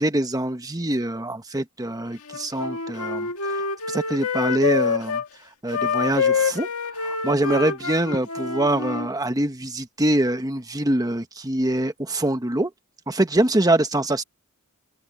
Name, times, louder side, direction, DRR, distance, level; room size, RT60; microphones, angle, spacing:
voice 1, 0.0-12.7 13.1-14.2, right 1 dB, 15° right, 1.2 m, -24 dB
Wind instrument woodwind instrument, 2.3-5.3 5.7-9.1, left 5 dB, 80° left, 1.7 m, -26 dB
open air
head